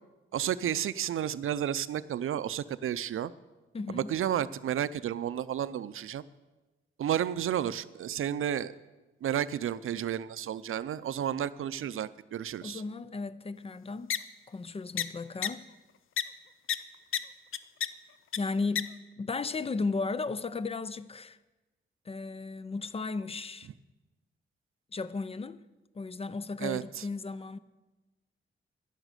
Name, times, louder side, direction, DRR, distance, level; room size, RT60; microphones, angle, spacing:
voice 1, 0.3-3.3 3.9-6.2 7.0-8.7 9.2-12.8 26.6-27.0, right 10 dB, 85° right, 0.5 m, -32 dB
voice 2, 3.7-4.2 12.6-14.2 14.5-15.7 18.4-21.4 22.1-23.7 24.9-25.6 25.9-27.6, left 3 dB, 30° left, 0.4 m, -35 dB
sound 1, 14.1-14.2 15.0-15.1 15.4-15.5 16.2-16.3 16.7-16.8 17.1-17.2 17.5-17.9 18.3-18.4 18.8-18.9, left 9 dB, 75° left, 0.6 m, -28 dB
11.0 x 10.5 x 6.6 m
wide cardioid pair, 150°, 21 cm